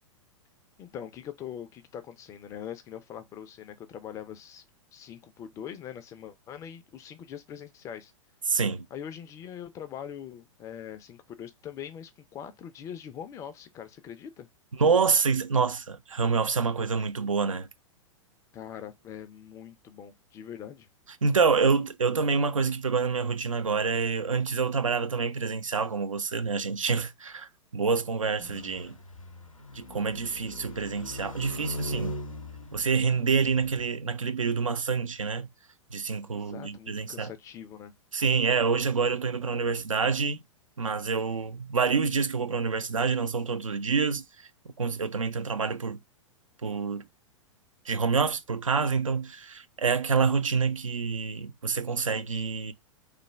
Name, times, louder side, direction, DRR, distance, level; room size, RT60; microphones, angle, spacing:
voice 1, 0.8-4.6 4.9-8.1 8.9-14.5 18.5-20.9 36.3-37.9, left 9 dB, 20° left, 0.4 m, -42 dB
voice 2, 8.5-8.9 14.8-17.7 21.2-29.0 29.7-32.2 32.7-35.5 35.9-37.3 38.1-40.4 40.8-44.5 44.8-46.0 46.6-47.0 47.9-52.7, right 5 dB, 80° right, 0.4 m, -27 dB
sound 1, 28.4-33.9, left 1 dB, 90° left, 0.6 m, -40 dB
3.2 x 2.1 x 3.0 m
figure-of-eight pair, 100°, 17 cm